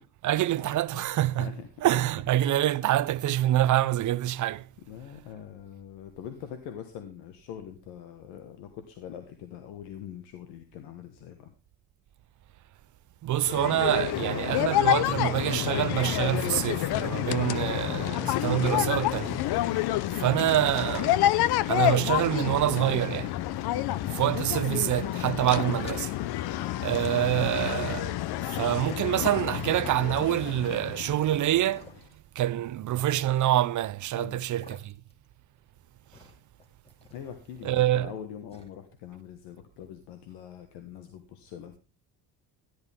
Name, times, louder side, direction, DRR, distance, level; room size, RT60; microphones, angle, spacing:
voice 1, 0.2-4.7 13.2-19.4 20.2-21.2 21.7-23.3 24.1-26.1 26.8-31.9 32.4-34.9 37.6-38.1, right 13 dB, 45° right, 0.6 m, -26 dB
voice 2, 4.9-11.5 17.4-17.7 19.6-19.9 23.7-24.0 34.2-34.4 37.1-41.8, left 9 dB, 85° left, 1.7 m, -43 dB
sound 1, 13.4-31.8, left 14 dB, 65° left, 0.8 m, -29 dB
sound 2, 19.1-20.0 20.5-21.8 22.5-22.9 23.5-23.6 24.0-24.8 25.0-26.6 27.0-28.0 28.7-28.9 29.6-29.7 30.2-31.0 31.2-31.3 31.7-32.1 32.9-34.1 34.6-35.3 35.6-38.2 38.5-38.7, left 1 dB, 15° left, 2.6 m, -55 dB
13.0 x 11.5 x 3.6 m
cardioid pair, 110°, 41 cm